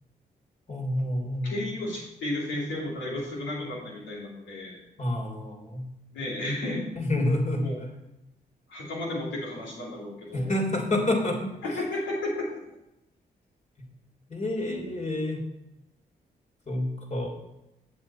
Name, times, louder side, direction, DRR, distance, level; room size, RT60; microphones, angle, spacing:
voice 1, 0.7-1.6 5.0-5.8 7.0-7.9 10.3-11.5 14.3-15.4 16.7-17.3, left 1 dB, 40° left, 0 dB, 3.2 m, -28 dB
voice 2, 1.4-4.8 6.1-6.9 7.6-7.8 8.7-10.5 11.6-12.5, left 1 dB, 85° left, -4 dB, 2.8 m, -33 dB
7.7 x 7.6 x 4.4 m, 0.91 s
supercardioid pair, 45°, 19 cm